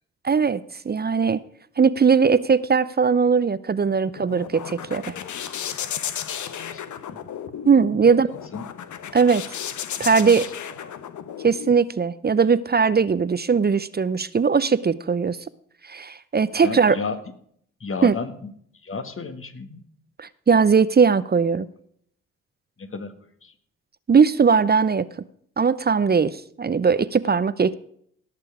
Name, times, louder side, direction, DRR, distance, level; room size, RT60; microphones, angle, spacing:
voice 1, 0.2-1.4 1.8-5.1 7.6-8.3 9.1-9.4 10.0-10.5 11.4-15.4 15.8-17.0 18.0-18.2 20.2-21.7 24.1-25.1 25.6-27.7, right 5 dB, 30° right, 16 dB, 0.6 m, -19 dB
sound 1, 3.8-11.7, left 9 dB, 60° left, 0.9 m, -34 dB
voice 2, 4.9-6.0 6.3-6.8 7.1-7.2 8.0-8.2 8.5-8.6 10.0-10.4 10.8-10.9 16.6-17.2 17.8-18.5 18.8-19.8 22.8-23.1 23.4-23.5, left 4 dB, 40° left, 10 dB, 1.6 m, -34 dB
17.5 x 6.7 x 4.9 m, 0.64 s
hypercardioid pair, 40°, 33 cm